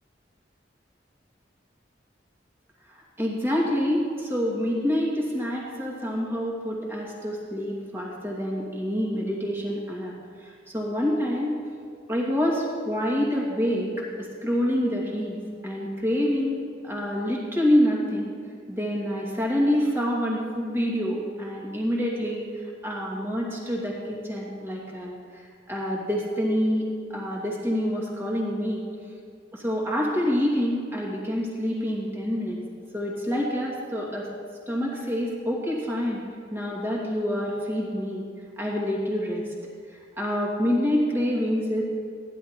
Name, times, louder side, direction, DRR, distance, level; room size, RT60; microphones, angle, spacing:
voice 1, 2.9-10.1 10.4-11.5 12.1-13.9 14.2-18.3 18.7-22.4 22.8-25.4 25.7-28.8 29.5-32.6 32.9-34.3 34.7-36.2 36.5-38.2 38.6-39.4 39.9-41.8, equal, 15° right, -3 dB, 2.4 m, -27 dB
15.0 x 11.0 x 4.4 m, 2.2 s
head